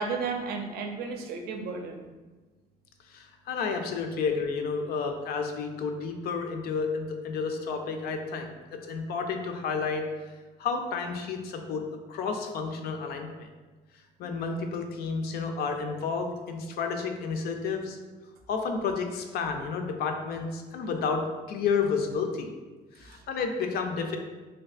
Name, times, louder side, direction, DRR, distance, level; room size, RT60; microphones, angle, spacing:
voice 1, 0.0-2.0 23.1-23.2, right 4 dB, 65° right, 3 dB, 0.5 m, -33 dB
voice 2, 3.1-10.1 10.6-13.5 14.2-18.0 18.5-22.5 23.0-24.2, left 5 dB, 70° left, 5 dB, 0.4 m, -31 dB
3.4 x 2.6 x 2.4 m, 1.3 s
cardioid pair, 110°, 17 cm